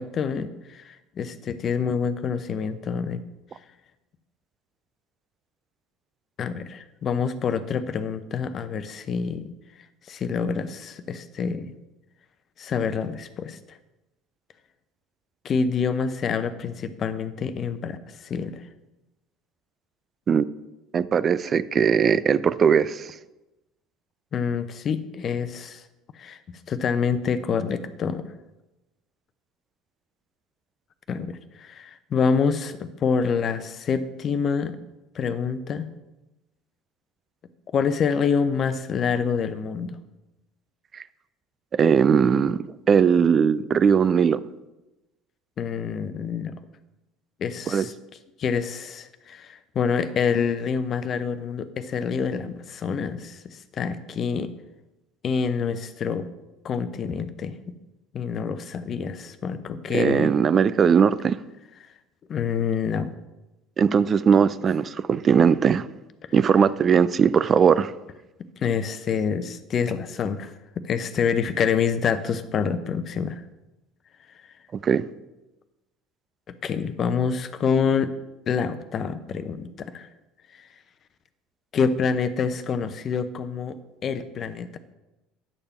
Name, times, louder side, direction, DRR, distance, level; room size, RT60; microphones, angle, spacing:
voice 1, 0.0-3.2 6.4-9.5 10.1-11.7 12.6-13.8 15.4-18.6 24.3-25.8 26.1-26.4 26.7-28.2 31.1-34.8 35.1-35.8 37.7-40.0 45.6-46.5 47.4-47.9 48.4-54.5 55.2-56.3 56.6-57.6 58.1-60.3 62.3-63.1 68.6-70.5 70.8-73.4 76.5-78.1 78.5-80.1 81.7-83.8 84.0-84.8, left 6 dB, 45° left, 11 dB, 0.8 m, -27 dB
voice 2, 20.9-23.1 40.9-41.0 41.7-42.6 42.9-44.4 47.7-47.9 59.9-61.4 63.8-65.9 66.3-67.9 74.8-75.0, right 7 dB, 40° right, 16 dB, 0.4 m, -19 dB
10.0 x 6.8 x 4.3 m, 1.0 s
hypercardioid pair, 70°, 0 cm